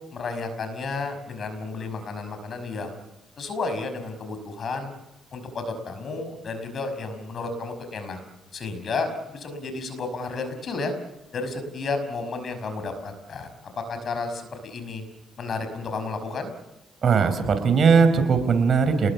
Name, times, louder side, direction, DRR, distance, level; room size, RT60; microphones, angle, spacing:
voice 1, 0.1-3.0 3.4-4.9 5.3-8.2 8.5-10.9 11.3-15.0 15.4-16.5, left 3 dB, 50° left, 8 dB, 5.5 m, -32 dB
voice 2, 17.0-19.1, right 5 dB, 50° right, 9 dB, 4.6 m, -19 dB
28.0 x 20.5 x 7.0 m, 0.98 s
cardioid pair, 90°, 0 cm